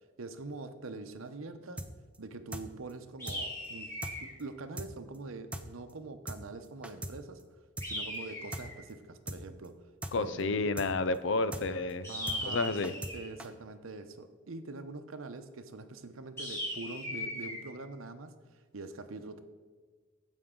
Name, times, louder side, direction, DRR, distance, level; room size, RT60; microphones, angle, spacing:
voice 1, 0.2-1.8 2.2-3.9 4.2-7.4 7.8-9.7 10.1-10.6 12.1-12.8 13.1-18.3 18.7-19.4, right 3 dB, 90° right, 9 dB, 0.8 m, -44 dB
sound 1, 1.8-2.2 2.5-2.6 2.9-3.0 3.3-3.4 3.6-3.7 4.0-4.1 4.4-4.5 4.8-4.9 5.1-5.2 5.5-5.6 5.9-6.0 6.3-6.4 6.6-7.1 7.4-7.5 7.8-7.9 8.1-8.2 8.5-8.6 8.9-9.0 9.3-9.4 9.6-9.7 10.0-10.1 10.4-10.5 10.8-10.9 11.1-11.2 11.5-11.6 11.9-12.0 12.3-12.4 12.6-13.1 13.4-13.5, right 1 dB, 5° right, 0.5 m, -39 dB
sound 2, 3.2-4.4 7.8-8.8 12.0-13.3 16.4-17.6, left 1 dB, 15° left, 2.4 m, -38 dB
voice 2, 10.1-12.1 12.4-12.9, left 3 dB, 65° left, 13 dB, 0.5 m, -30 dB
14.5 x 5.3 x 3.7 m, 1.4 s
head